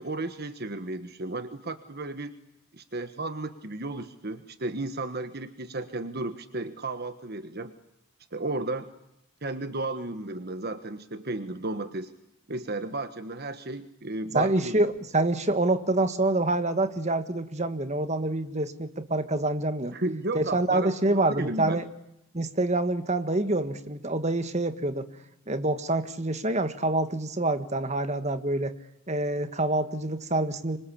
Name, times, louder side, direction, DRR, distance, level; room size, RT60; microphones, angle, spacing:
voice 1, 0.0-2.3 2.7-7.7 8.3-8.9 9.4-12.1 12.5-14.8 19.9-21.8, right 2 dB, 50° right, 10 dB, 1.4 m, -34 dB
voice 2, 14.3-19.9 20.3-21.9 22.3-25.1 25.5-28.7 29.1-30.8, right 2 dB, 35° right, 10 dB, 1.7 m, -26 dB
26.0 x 25.5 x 8.5 m, 0.84 s
head